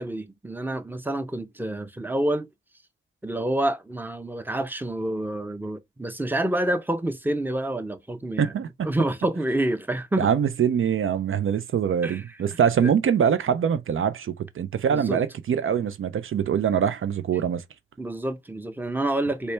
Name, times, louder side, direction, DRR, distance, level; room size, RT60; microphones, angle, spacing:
voice 1, 0.0-2.5 3.2-10.3 12.0-12.4 12.8-12.9 14.9-15.2 18.0-19.5, right 1 dB, 10° right, 0.6 m, -28 dB
voice 2, 8.4-8.7 10.2-17.6, right 8 dB, 75° right, 0.4 m, -23 dB
4.1 x 2.2 x 3.2 m
cardioid pair, 55°, 21 cm